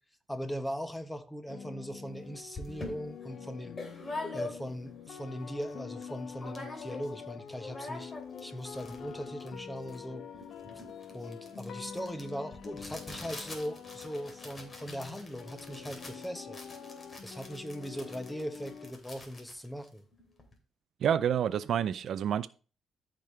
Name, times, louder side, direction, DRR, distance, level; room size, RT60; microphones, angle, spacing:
voice 1, 0.3-3.8 4.3-8.1 8.4-10.2 11.1-16.6 17.2-20.0, equal, 5° left, 1.2 m, -39 dB
sound 1, 1.5-18.9, left 7 dB, 65° left, 0.8 m, -46 dB
sound 2, 2.1-2.2 2.5-4.9 5.3-5.4 5.6-6.1 6.4-7.2 7.5-20.5, left 2 dB, 30° left, 2.9 m, -45 dB
voice 2, 21.0-22.5, right 9 dB, 65° right, 0.4 m, -28 dB
13.5 x 5.2 x 3.3 m
cardioid pair, 90°, 0 cm